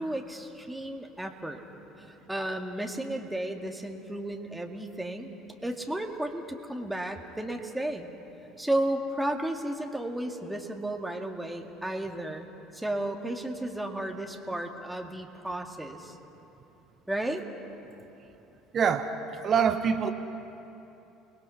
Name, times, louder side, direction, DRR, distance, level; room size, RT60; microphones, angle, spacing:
voice 1, 0.0-1.6 2.0-5.3 5.6-8.1 8.6-12.5 12.7-16.2 17.1-17.5, right 1 dB, 5° right, 2 dB, 2.1 m, -33 dB
voice 2, 18.7-19.1 19.4-20.1, right 7 dB, 40° right, 7 dB, 1.2 m, -24 dB
30.0 x 20.5 x 5.7 m, 2.9 s
figure-of-eight pair, 60°, 0 cm